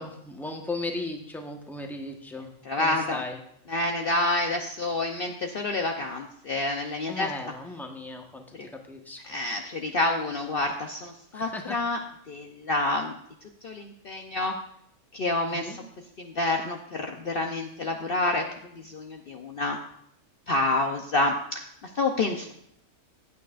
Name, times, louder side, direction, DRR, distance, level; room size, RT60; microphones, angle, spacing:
voice 1, 0.0-2.5 2.8-3.4 7.1-8.4 8.7-9.2 11.3-11.8 15.5-15.8, left 2 dB, ahead, 2 dB, 1.1 m, -36 dB
voice 2, 2.7-3.2 3.7-7.3 8.6-8.7 9.2-12.0 12.3-13.1 13.6-14.6 15.1-15.8 16.2-18.4 18.8-19.8 20.5-21.6 22.0-22.5, left 2 dB, 50° left, 3 dB, 0.9 m, -28 dB
15.5 x 8.9 x 2.5 m, 0.71 s
omnidirectional pair, 1.4 m